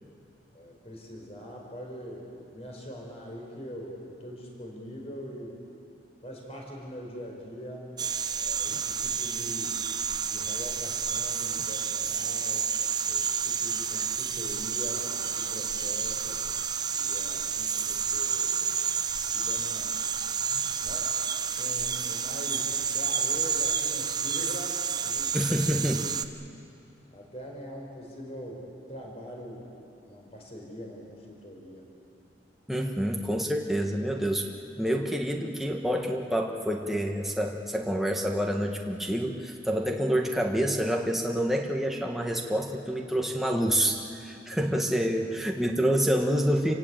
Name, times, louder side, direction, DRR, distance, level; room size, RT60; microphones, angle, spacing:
voice 1, 0.5-5.6 6.2-7.9 8.4-9.9 10.3-12.7 13.1-16.4 16.9-18.7 19.3-20.0 20.8-21.2 21.5-25.5 27.1-29.8 30.0-31.8 44.5-44.8 45.1-45.2, equal, 35° left, -1 dB, 5.0 m, -42 dB
sound 1, 8.0-26.3, right 7 dB, 20° right, 0.6 m, -30 dB
voice 2, 25.3-26.1 32.7-34.5 34.8-46.7, equal, ahead, 1 dB, 1.4 m, -27 dB
28.0 x 17.0 x 8.8 m, 2.7 s
head